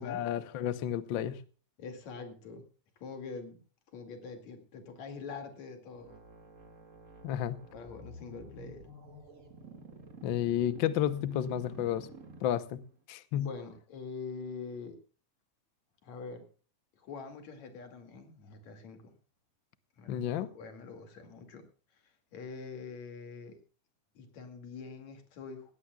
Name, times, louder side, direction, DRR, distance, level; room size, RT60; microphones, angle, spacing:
voice 1, 0.0-1.4 7.2-7.6 10.2-12.1 12.4-12.8 13.1-13.5 20.1-20.5, left 11 dB, 85° left, 14 dB, 1.0 m, -31 dB
voice 2, 1.8-2.7 3.0-3.6 3.9-6.2 7.7-8.9 13.3-15.0 16.0-16.5 17.0-19.1 20.0-21.6 22.0-23.6 24.2-25.7, left 4 dB, 70° left, 6 dB, 3.6 m, -44 dB
sound 1, 6.0-12.9, right 2 dB, 30° right, 1.9 m, -51 dB
17.5 x 17.0 x 2.3 m, 0.37 s
omnidirectional pair, 3.4 m